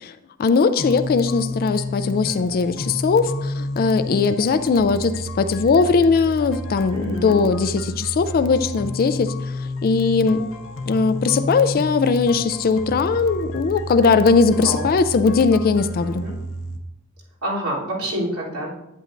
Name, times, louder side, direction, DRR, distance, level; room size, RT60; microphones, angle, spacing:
voice 1, 0.0-10.4 10.9-16.2, left 4 dB, 45° left, 11 dB, 0.3 m, -19 dB
sound 1, 0.8-16.8, left 1 dB, 65° left, 0.9 m, -30 dB
voice 2, 6.9-7.4 14.5-14.9 16.0-16.3 17.4-18.7, equal, 90° right, -6 dB, 3.2 m, -27 dB
11.0 x 8.7 x 2.5 m, 0.90 s
head